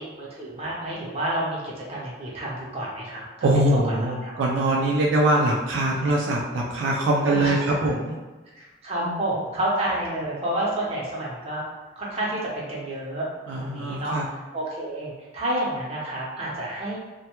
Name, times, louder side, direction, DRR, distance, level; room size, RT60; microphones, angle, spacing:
voice 1, 0.0-3.6 4.0-4.4 7.3-7.5 8.6-11.6 12.0-13.3 13.5-14.1 14.5-17.0, right 1 dB, 35° right, -5 dB, 0.7 m, -29 dB
voice 2, 3.4-8.2 9.0-9.2 13.5-14.3, right 1 dB, 75° right, -2 dB, 0.3 m, -23 dB
2.1 x 2.1 x 2.8 m, 1.2 s
head